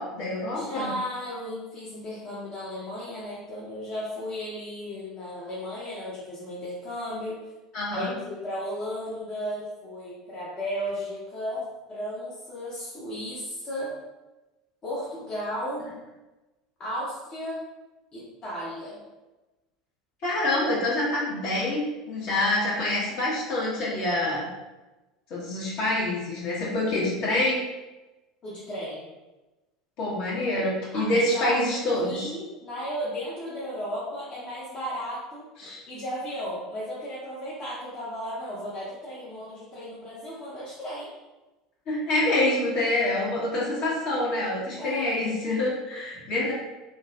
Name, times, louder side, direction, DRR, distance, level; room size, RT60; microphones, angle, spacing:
voice 1, 0.0-0.9 7.7-8.1 20.2-21.8 22.0-24.5 25.3-27.6 30.0-32.3 35.6-35.8 41.9-46.5, left 1 dB, 55° left, -6 dB, 1.1 m, -26 dB
voice 2, 0.5-7.4 7.9-13.9 14.8-15.9 16.8-17.6 18.1-19.0 28.4-29.1 30.9-31.8 32.0-35.5 35.9-41.1 44.8-45.1, equal, 35° left, -8 dB, 0.8 m, -34 dB
2.9 x 2.7 x 2.3 m, 1.1 s
figure-of-eight pair, 75°, 2 cm